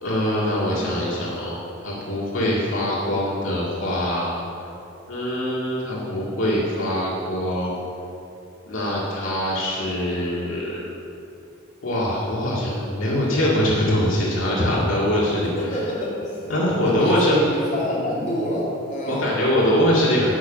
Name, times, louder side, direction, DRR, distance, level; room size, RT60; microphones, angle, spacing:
voice 1, 0.0-4.3 5.1-7.8 8.6-10.8 11.8-15.5 16.5-17.4 19.1-20.3, left 1 dB, 70° left, -6 dB, 2.1 m, -23 dB
voice 2, 0.7-1.0 15.3-19.3, left 1 dB, 35° left, -7 dB, 3.2 m, -28 dB
12.5 x 5.5 x 8.8 m, 2.8 s
head